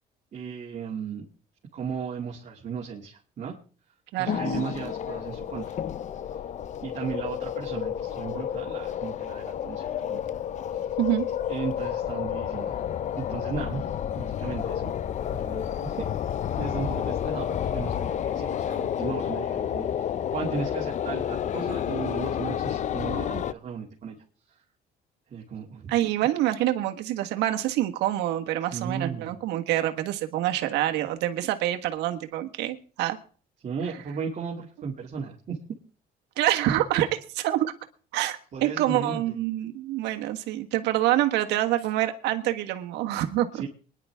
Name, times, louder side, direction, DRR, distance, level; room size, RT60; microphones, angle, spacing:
voice 1, 0.3-1.3 1.7-3.6 4.2-5.8 6.8-10.2 11.5-12.8 13.2-13.9 14.2-14.9 15.3-16.1 16.6-24.2 25.3-25.9 28.7-29.3 33.6-35.6 38.5-39.4 43.5-43.7, right 6 dB, 45° right, -4 dB, 2.7 m, -35 dB
sound 1, 4.3-23.5, left 9 dB, 45° left, 0.6 m, -30 dB
voice 2, 25.9-33.2 36.4-37.1 37.3-37.7 38.1-43.6, right 13 dB, 90° right, 7 dB, 1.5 m, -26 dB
23.0 x 10.5 x 3.6 m, 0.40 s
cardioid pair, 110°, 17 cm